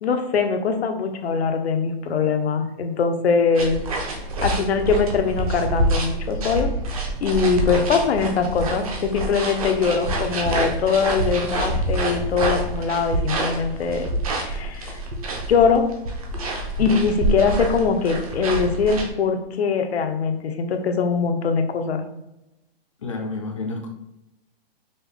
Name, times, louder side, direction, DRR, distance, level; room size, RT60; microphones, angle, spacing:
voice 1, 0.0-3.8 4.1-6.7 7.2-14.1 14.4-14.9 15.5-15.8 16.8-22.0, left 5 dB, 85° left, 6 dB, 0.7 m, -22 dB
sound 1, 3.6-19.1, right 1 dB, 35° right, 0.6 m, -27 dB
voice 2, 23.0-23.9, left 3 dB, 30° left, 2 dB, 0.4 m, -30 dB
5.3 x 2.1 x 3.4 m, 0.89 s
hypercardioid pair, 175°, 31 cm